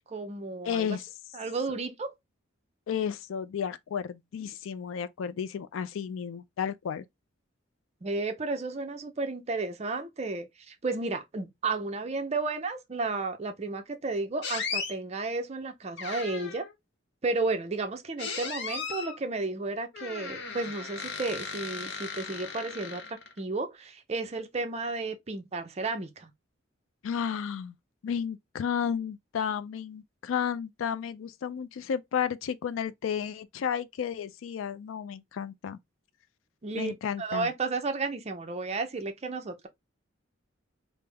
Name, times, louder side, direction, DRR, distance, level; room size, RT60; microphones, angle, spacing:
voice 1, 0.1-1.0 1.3-2.1 8.0-16.7 17.2-26.3 36.6-36.9 37.2-39.7, right 3 dB, 35° right, 0.5 m, -33 dB
voice 2, 0.6-1.1 2.9-7.1 27.0-27.7 28.0-35.8 36.7-37.5, left 7 dB, 85° left, 0.3 m, -32 dB
sound 1, 14.4-14.9 16.0-16.7 18.2-19.2 19.9-23.4, left 5 dB, 60° left, 0.8 m, -36 dB
3.3 x 2.0 x 3.3 m
head